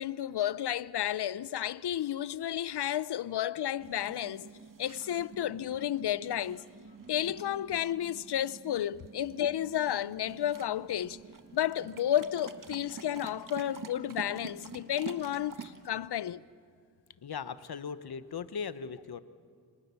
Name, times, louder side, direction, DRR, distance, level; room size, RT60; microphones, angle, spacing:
voice 1, 0.0-4.5 4.8-6.6 7.1-11.2 11.5-16.4, left 11 dB, 85° left, 0.6 m, -32 dB
sound 1, 3.8-15.9, right 4 dB, 55° right, 1.7 m, -48 dB
voice 2, 17.2-19.2, left 6 dB, 70° left, 1.1 m, -38 dB
28.5 x 25.5 x 7.0 m
wide cardioid pair, 70°, 39 cm